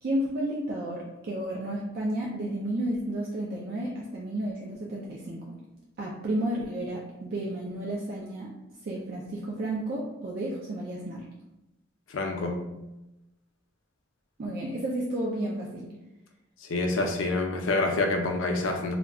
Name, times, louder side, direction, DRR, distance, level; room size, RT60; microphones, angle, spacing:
voice 1, 0.0-5.6 6.0-8.5 8.8-11.3 14.4-15.9, right 1 dB, 50° right, -4 dB, 0.4 m, -32 dB
voice 2, 12.1-12.6 16.6-19.0, left 2 dB, 80° left, 3 dB, 0.4 m, -27 dB
2.2 x 2.1 x 3.6 m, 0.96 s
head